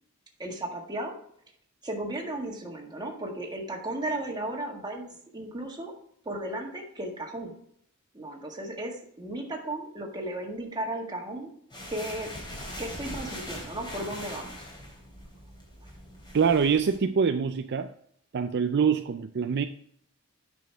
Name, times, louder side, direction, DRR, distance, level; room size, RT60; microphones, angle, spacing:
voice 1, 0.4-1.2 1.8-5.9 6.3-7.5 8.1-11.5 11.9-12.3 12.8-14.5 15.8-15.9, right 1 dB, 20° right, 1.8 m, -35 dB
sound 1, 11.7-17.0, left 1 dB, 20° left, 3.0 m, -41 dB
voice 2, 16.3-17.9 18.3-19.7, right 6 dB, 50° right, 0.4 m, -24 dB
9.4 x 6.2 x 3.4 m
head